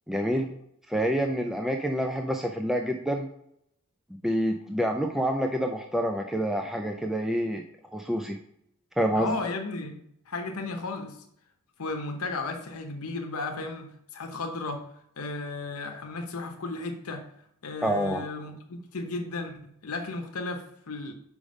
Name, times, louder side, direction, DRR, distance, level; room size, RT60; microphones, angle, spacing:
voice 1, 0.1-0.5 0.9-3.3 4.2-7.6 7.9-8.4 9.0-9.4 17.8-18.2, equal, ahead, 3 dB, 0.4 m, -27 dB
voice 2, 9.1-10.0 10.3-11.2 11.8-14.8 15.2-17.2 17.6-21.1, left 3 dB, 85° left, 4 dB, 0.8 m, -34 dB
5.0 x 4.9 x 5.2 m, 0.73 s
head